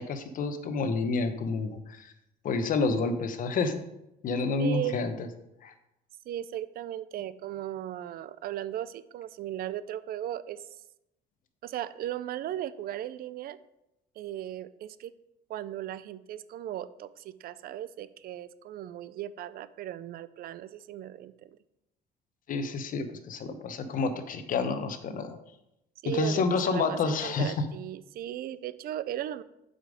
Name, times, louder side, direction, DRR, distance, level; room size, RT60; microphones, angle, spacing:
voice 1, 0.0-2.1 2.4-3.8 4.2-5.1 5.6-5.7 22.5-25.4 26.0-27.6, left 4 dB, 55° left, 9 dB, 1.0 m, -29 dB
voice 2, 4.6-5.0 6.3-10.6 11.6-13.6 14.2-15.1 15.5-21.5 26.0-29.4, right 12 dB, 60° right, 15 dB, 0.5 m, -37 dB
7.6 x 5.2 x 5.0 m, 0.87 s
cardioid pair, 110°, 17 cm